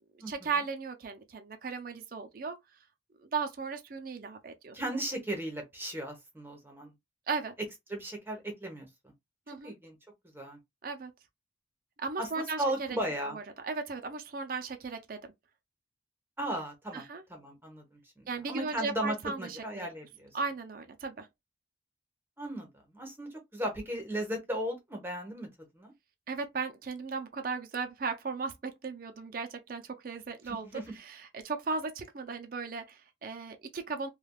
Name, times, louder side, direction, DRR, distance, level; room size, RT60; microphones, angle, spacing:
voice 1, 0.3-2.6 3.2-4.7 7.3-7.5 9.5-9.7 10.8-11.1 12.0-13.0 13.3-15.2 16.9-17.2 18.3-19.9 20.3-21.3 26.3-34.1, right 4 dB, 50° right, 0.5 m, -36 dB
voice 2, 4.7-6.9 7.9-8.9 9.6-10.0 10.3-10.6 12.2-13.4 16.4-17.0 17.3-20.3 22.4-25.5 25.7-25.9 30.6-30.8, right 1 dB, 10° right, 0.9 m, -36 dB
3.3 x 2.3 x 2.3 m
head